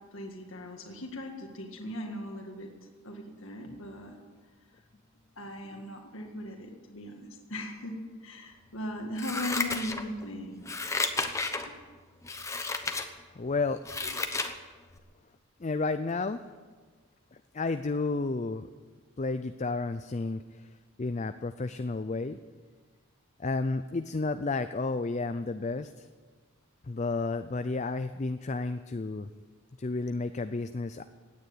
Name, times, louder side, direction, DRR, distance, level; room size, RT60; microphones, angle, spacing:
voice 1, 0.1-2.7 3.0-4.2 5.4-10.6 11.6-11.7 14.0-14.2, left 1 dB, 60° left, 2 dB, 1.9 m, -39 dB
Scissors, 9.2-10.3 10.6-11.7 12.2-13.1 13.5-14.5 14.9-15.0, left 3 dB, 15° left, 0.9 m, -32 dB
voice 2, 13.3-13.8 15.6-16.4 17.5-18.7 19.2-20.7 21.0-22.4 23.4-26.1 26.8-29.3 29.8-31.0, left 3 dB, 30° left, 10 dB, 0.4 m, -31 dB
17.0 x 9.6 x 8.7 m, 1.4 s
head